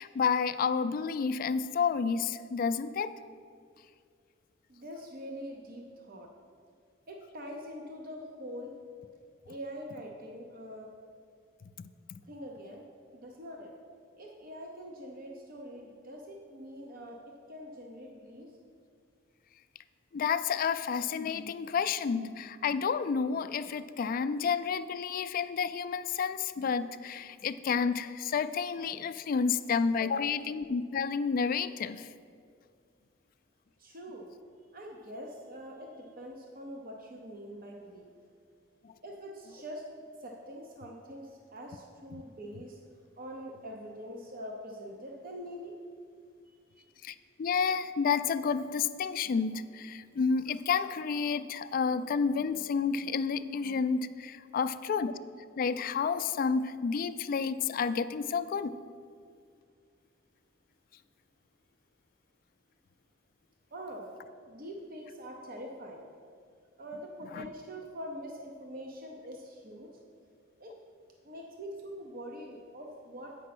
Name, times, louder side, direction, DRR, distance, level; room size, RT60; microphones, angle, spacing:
voice 1, 0.0-3.1 20.1-32.1 38.8-38.9 47.0-55.1 55.6-58.7 67.3-67.5, left 6 dB, 45° left, 11 dB, 0.3 m, -30 dB
voice 2, 4.7-6.3 7.1-8.8 9.5-10.9 12.2-12.8 13.1-13.7 14.2-18.5 29.2-29.3 33.8-34.3 34.7-38.1 39.0-39.9 40.2-42.8 43.2-45.8 46.7-46.8 63.7-64.1 64.5-66.0 66.8-70.0 70.6-70.7 71.2-73.4, equal, 50° right, 1 dB, 0.8 m, -44 dB
8.5 x 5.2 x 6.0 m, 2.2 s
head